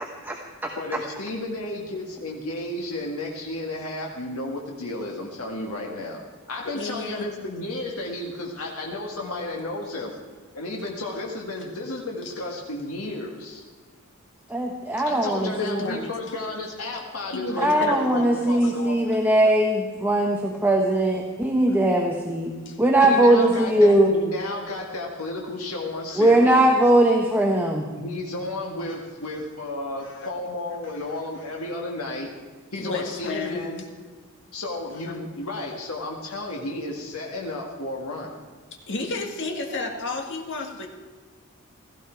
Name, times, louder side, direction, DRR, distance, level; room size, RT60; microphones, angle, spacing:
voice 1, 0.8-6.2 6.5-10.1 10.5-13.6 15.1-19.2 23.0-26.6 28.0-32.3 32.7-33.8 34.5-38.3, left 2 dB, 85° left, -1 dB, 1.8 m, -33 dB
voice 2, 6.7-7.3 15.1-16.3 17.3-18.5 22.7-22.8 30.0-30.3 32.7-33.6 38.9-40.9, left 3 dB, 60° left, 3 dB, 2.0 m, -32 dB
voice 3, 14.5-15.8 17.6-22.5 22.8-24.2 26.2-27.9, right 1 dB, 10° right, 1 dB, 1.1 m, -20 dB
16.5 x 14.5 x 4.6 m, 1.4 s
head